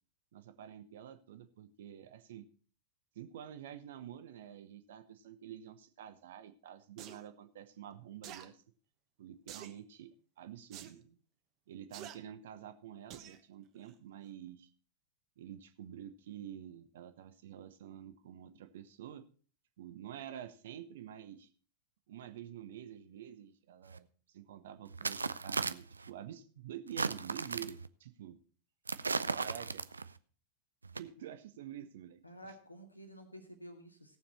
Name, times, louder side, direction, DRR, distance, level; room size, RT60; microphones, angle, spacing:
voice 1, 0.3-2.5 3.1-8.6 9.2-11.2 11.7-14.7 15.4-19.3 19.8-21.5 22.1-28.4 29.3-29.8 30.9-32.2, right 10 dB, 60° right, 11 dB, 1.0 m, -48 dB
sound 1, 7.0-7.2 8.2-8.5 9.5-9.8 10.7-10.9 11.9-12.2 13.1-13.4 13.8-13.9, right 10 dB, 40° right, 1.2 m, -48 dB
sound 2, 23.9-24.0 24.9-26.1 26.9-27.9 28.9-30.2 30.8-31.0, right 4 dB, 75° right, 0.4 m, -36 dB
voice 2, 32.2-34.2, equal, 85° left, 4 dB, 1.9 m, -51 dB
17.0 x 7.2 x 4.3 m, 0.41 s
figure-of-eight pair, 90°, 0 cm